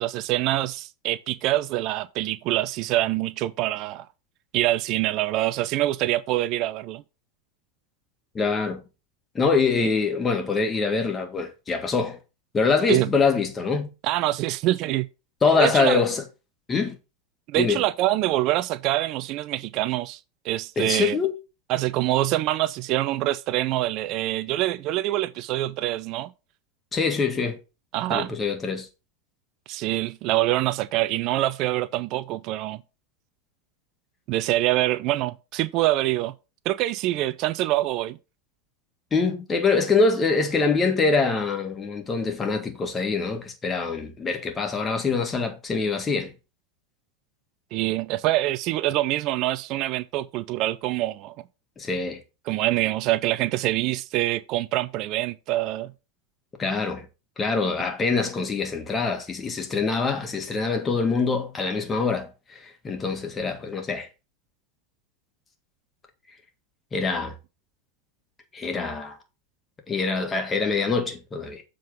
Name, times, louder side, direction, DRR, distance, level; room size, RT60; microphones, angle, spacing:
voice 1, 0.0-4.1 4.5-7.0 9.8-9.9 12.9-13.1 14.0-15.1 15.5-16.0 17.5-20.2 20.4-21.2 21.7-26.3 27.9-28.3 29.7-32.8 34.3-36.3 36.7-38.2 47.7-51.3 52.5-55.9, right 16 dB, 50° right, 0.4 m, -25 dB
voice 2, 8.3-8.8 9.4-12.2 12.5-13.9 15.4-16.2 16.7-16.9 17.5-17.8 20.8-21.3 26.9-27.6 28.1-28.9 39.1-46.3 51.8-52.2 56.6-57.1 57.4-64.1 66.9-67.3 68.5-69.2 69.9-71.6, left 4 dB, 25° left, 1.8 m, -24 dB
7.4 x 3.7 x 5.2 m
hypercardioid pair, 90°, 0 cm